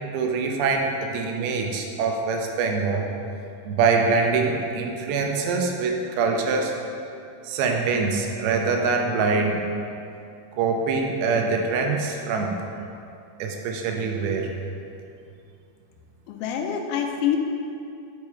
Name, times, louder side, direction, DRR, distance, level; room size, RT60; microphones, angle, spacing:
voice 1, 0.1-3.1 3.7-6.7 7.4-9.7 10.6-12.6 13.4-14.5, right 4 dB, 90° right, 2 dB, 2.6 m, -24 dB
voice 2, 16.3-17.4, left 9 dB, 90° left, 3 dB, 2.6 m, -26 dB
8.2 x 4.8 x 4.4 m, 2.6 s
omnidirectional pair, 4.3 m